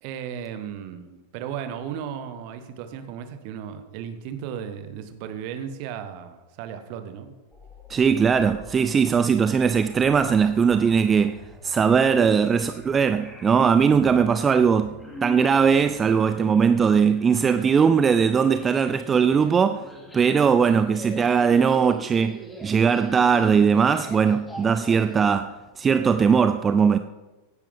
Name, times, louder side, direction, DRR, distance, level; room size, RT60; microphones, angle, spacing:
voice 1, 0.0-7.3, right 8 dB, 45° right, 1.3 m, -35 dB
sound 1, 7.5-25.3, left 1 dB, 5° left, 2.6 m, -44 dB
voice 2, 7.9-11.4 11.6-14.9 15.2-19.9 20.1-27.0, right 6 dB, 20° right, 0.4 m, -20 dB
16.5 x 10.0 x 3.6 m
figure-of-eight pair, 90°, 0 cm